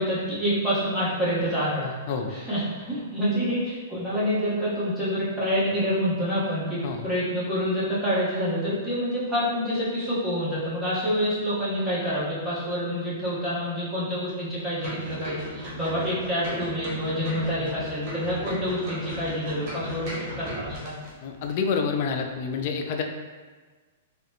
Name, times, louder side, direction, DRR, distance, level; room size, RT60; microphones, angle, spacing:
voice 1, 0.0-1.9 2.3-20.9, equal, ahead, -12 dB, 1.1 m, -27 dB
sound 1, 14.8-21.1 21.4-21.5, right 1 dB, 40° right, 1.1 m, -36 dB
voice 2, 21.2-23.0, left 5 dB, 45° left, 4 dB, 0.4 m, -27 dB
3.8 x 2.2 x 2.8 m, 1.4 s
hypercardioid pair, 155°, 0 cm